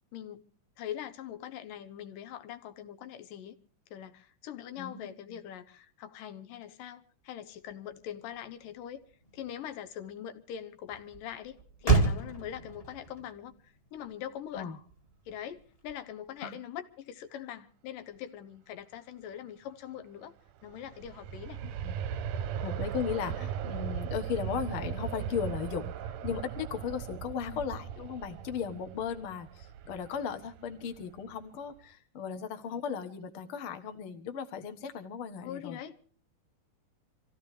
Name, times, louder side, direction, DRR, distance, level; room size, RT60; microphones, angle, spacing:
voice 1, 0.1-0.4 0.8-3.6 3.9-9.0 9.3-14.7 15.3-20.3 20.6-21.6 27.5-27.6 35.4-36.0, left 10 dB, 80° left, 2.7 m, -42 dB
voice 2, 4.8-5.4 14.5-14.8 16.4-16.6 21.8-22.0 22.6-35.8, left 7 dB, 50° left, 1.9 m, -36 dB
Motor vehicle (road), 7.7-16.4, right 4 dB, 15° left, 1.4 m, -34 dB
Aircraft, 20.5-31.3 31.8-31.9, right 8 dB, 70° right, 1.8 m, -38 dB
26.0 x 15.5 x 3.2 m
omnidirectional pair, 3.8 m